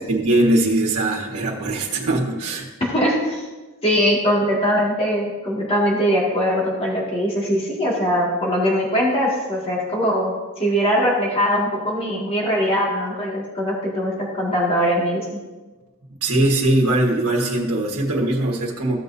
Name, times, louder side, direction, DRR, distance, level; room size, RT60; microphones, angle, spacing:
voice 1, 0.1-2.7 16.2-19.0, right 1 dB, 80° right, -2 dB, 1.5 m, -20 dB
voice 2, 2.8-3.4 3.8-15.4, equal, 25° left, -4 dB, 2.1 m, -21 dB
15.0 x 6.7 x 2.7 m, 1.2 s
head